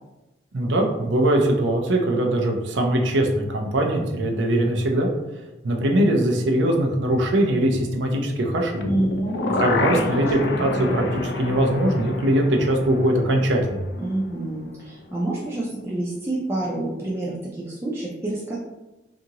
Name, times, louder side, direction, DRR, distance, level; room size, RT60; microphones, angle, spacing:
voice 1, 0.5-5.1 5.6-8.9 9.6-13.8, right 1 dB, 80° right, 2 dB, 0.5 m, -21 dB
sound 1, 8.8-14.8 15.1-15.2, left 3 dB, 65° left, 0.3 m, -29 dB
voice 2, 8.8-10.2 10.6-11.0 14.0-18.6, right 1 dB, 15° right, -6 dB, 0.3 m, -28 dB
2.7 x 2.5 x 2.8 m, 1.0 s
head